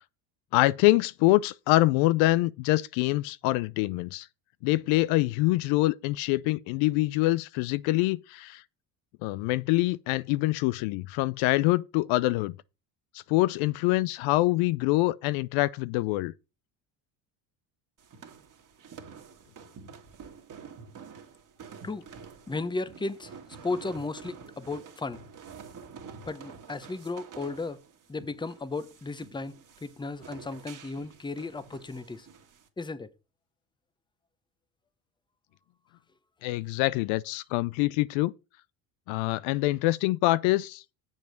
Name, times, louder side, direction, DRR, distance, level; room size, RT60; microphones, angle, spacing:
voice 1, 0.5-4.3 4.6-8.6 9.2-12.5 13.3-16.3 36.4-38.3 39.1-40.9, left 19 dB, 75° left, 0.6 m, -25 dB
sound 1, 18.0-32.7, right 6 dB, 40° right, 1.8 m, -48 dB
voice 2, 22.5-23.3 23.6-25.2 26.3-27.8 28.1-32.3 32.8-33.1, left 3 dB, 10° left, 0.8 m, -35 dB
7.1 x 5.3 x 6.5 m
supercardioid pair, 85°, 48 cm